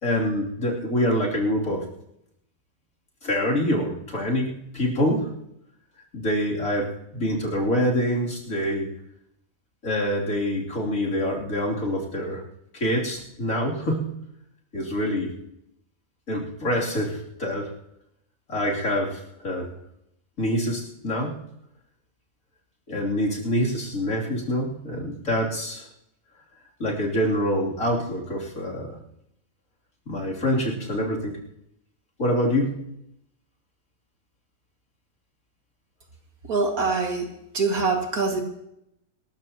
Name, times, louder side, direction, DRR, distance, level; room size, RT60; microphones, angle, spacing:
voice 1, 0.0-1.8 3.2-5.3 6.1-8.9 9.8-12.4 12.7-14.2 14.7-15.3 16.3-17.7 18.5-19.7 20.4-21.3 22.9-25.9 26.8-29.0 30.1-31.4 32.2-32.8, equal, 65° left, -3 dB, 3.5 m, -26 dB
voice 2, 36.5-37.3 37.5-38.4, right 4 dB, 80° right, 2 dB, 2.6 m, -24 dB
26.0 x 13.5 x 2.9 m, 0.80 s
omnidirectional pair, 1.5 m